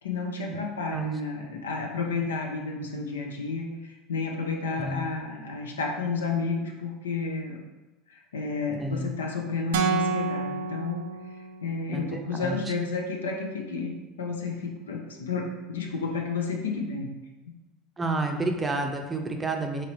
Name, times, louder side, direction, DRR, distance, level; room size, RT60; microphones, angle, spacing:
voice 1, 0.0-7.6 8.1-11.1 11.6-17.2, left 4 dB, 85° left, 1 dB, 0.5 m, -31 dB
sound 1, 9.7-11.8, right 5 dB, 75° right, 0.3 m, -29 dB
voice 2, 11.9-12.6 18.0-19.9, right 2 dB, 20° right, 3 dB, 0.5 m, -30 dB
3.7 x 3.0 x 3.0 m, 1.1 s
hypercardioid pair, 80°, 0 cm